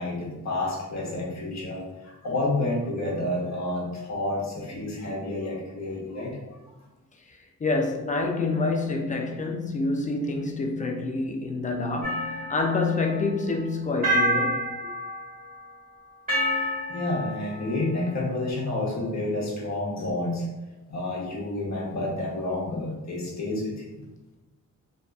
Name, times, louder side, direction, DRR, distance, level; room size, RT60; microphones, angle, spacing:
voice 1, 0.0-6.3 16.5-20.4 20.9-24.0, left 2 dB, 55° left, 0.9 m, -30 dB
voice 2, 7.6-14.7, left 3 dB, 25° left, 0.4 m, -27 dB
sound 1, 12.0-13.3 14.0-15.6 16.3-17.8, right 1 dB, 25° right, 1.4 m, -28 dB
2.5 x 2.4 x 2.2 m
cardioid pair, 80°, 34 cm